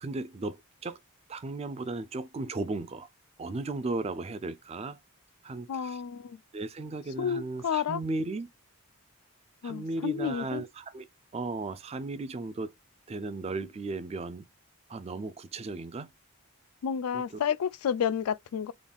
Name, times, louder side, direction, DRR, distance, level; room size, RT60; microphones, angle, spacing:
voice 1, 0.0-1.0 1.3-3.1 3.4-5.0 5.4-6.0 6.5-8.5 9.6-11.1 11.3-12.7 13.1-14.5 14.9-16.1 17.1-17.4, right 3 dB, 30° right, 0.3 m, -35 dB
voice 2, 5.7-6.4 7.2-8.0 9.6-10.6 16.8-18.7, left 8 dB, 80° left, 0.3 m, -30 dB
3.7 x 2.3 x 3.4 m
head